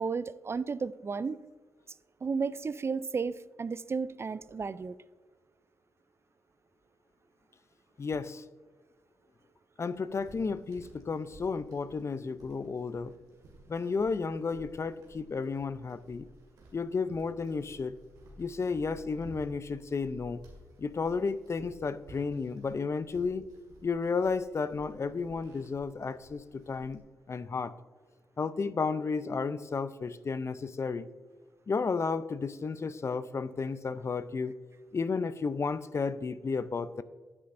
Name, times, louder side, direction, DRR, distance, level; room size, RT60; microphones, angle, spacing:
voice 1, 0.0-1.4 2.2-5.0, right 5 dB, 40° right, 0.4 m, -33 dB
voice 2, 8.0-8.4 9.8-13.1 13.7-16.3 16.7-18.0 18.4-20.4 20.8-23.5 23.8-27.0 27.3-27.7 28.4-31.1 31.7-34.6 34.9-37.0, left 4 dB, 45° left, 0.5 m, -32 dB
sound 1, 10.0-27.0, equal, 85° right, 2.1 m, -56 dB
9.8 x 8.4 x 2.6 m
supercardioid pair, 45°, 7 cm